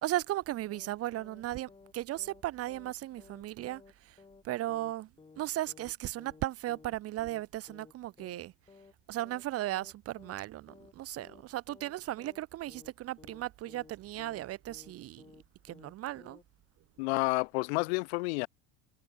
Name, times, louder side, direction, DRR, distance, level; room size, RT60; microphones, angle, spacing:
voice 1, 0.0-4.2 4.4-5.1 5.4-8.5 9.1-15.3 15.6-16.4, right 15 dB, 45° right, 2.9 m, -36 dB
sound 1, 0.7-1.4 1.7-1.9 2.2-2.4 2.7-2.9 3.2-3.4 3.7-3.9 4.2-4.4 4.7-4.9 5.2-5.4 5.7-5.9 6.2-6.4 6.7-6.9 7.2-7.4 7.7-7.9 8.2-8.4 8.7-8.9 9.2-9.4 9.7-9.9 10.2-10.4 10.7-10.9 11.2-11.4 11.7-11.9 12.2-12.4 12.7-12.9 13.2-13.4 13.7-13.9 14.2-14.4 14.7-14.9 15.2-15.4 15.7-15.9 16.2-16.4, left 4 dB, 15° left, 6.5 m, -56 dB
voice 2, 17.0-18.5, left 27 dB, 80° left, 1.7 m, -30 dB
supercardioid pair, 130°, 32 cm